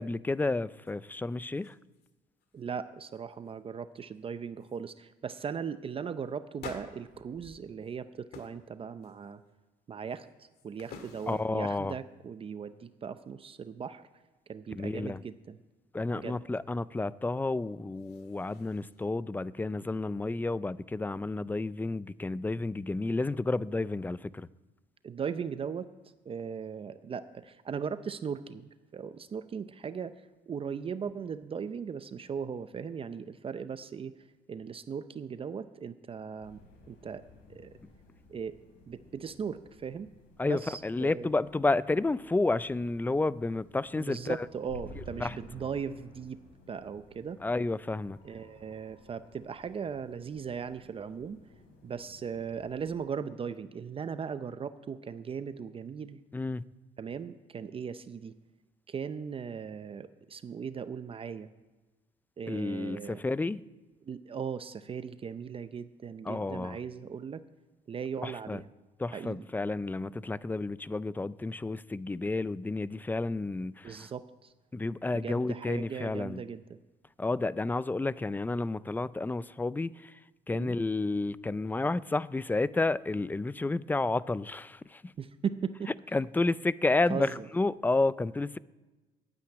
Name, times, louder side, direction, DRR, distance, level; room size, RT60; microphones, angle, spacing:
voice 1, 0.0-1.7 11.3-12.0 14.7-15.2 15.9-24.5 40.4-44.5 45.2-45.3 47.4-48.2 56.3-56.6 62.5-63.6 66.3-66.8 68.2-68.6 69.0-74.1 74.7-76.4 77.2-80.2 80.5-85.1 86.1-88.6, left 2 dB, 10° left, 0.3 m, -31 dB
sound 1, 0.8-0.9 1.3-2.1 2.4-2.7 3.1-3.6 4.1-4.2 4.6-4.8 5.3-5.5 6.6-8.0 8.3-8.6 9.0-9.5 10.1-11.7 17.7-19.1, left 5 dB, 65° left, 2.1 m, -51 dB
voice 2, 2.5-9.4 9.9-14.1 14.5-15.6 16.1-16.4 25.0-25.9 26.3-30.2 30.5-34.1 34.5-36.6 36.9-37.2 37.5-37.7 38.3-38.6 38.9-40.1 40.4-41.3 44.0-46.4 46.7-47.4 48.2-51.4 51.8-56.2 57.0-58.3 58.9-61.5 62.4-63.2 64.0-67.4 67.9-68.7 69.1-69.4 73.8-74.5 75.1-76.8 80.5-80.7 85.2-85.9 87.1-87.5, right 6 dB, 35° right, 0.6 m, -38 dB
sound 2, 36.4-52.9, left 2 dB, 80° left, 4.1 m, -54 dB
11.5 x 9.5 x 8.9 m
cardioid pair, 110°, 17 cm